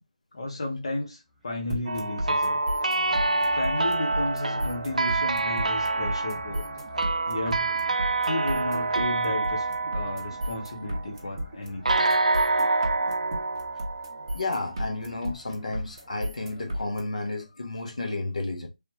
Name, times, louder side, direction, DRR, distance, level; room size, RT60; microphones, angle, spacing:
voice 1, 0.3-2.6 3.5-6.6 7.3-7.7 8.2-9.7 9.9-12.0, left 2 dB, 40° left, 0.8 m, -33 dB
sound 1, 1.3-16.9, equal, ahead, 0.4 m, -48 dB
sound 2, 1.7-17.0, equal, 30° right, 1.0 m, -33 dB
sound 3, 1.9-11.1 11.9-14.7, right 3 dB, 75° right, 0.5 m, -27 dB
voice 2, 14.3-18.7, left 2 dB, 70° left, 1.0 m, -32 dB
3.3 x 3.0 x 3.0 m
figure-of-eight pair, 175°, 4 cm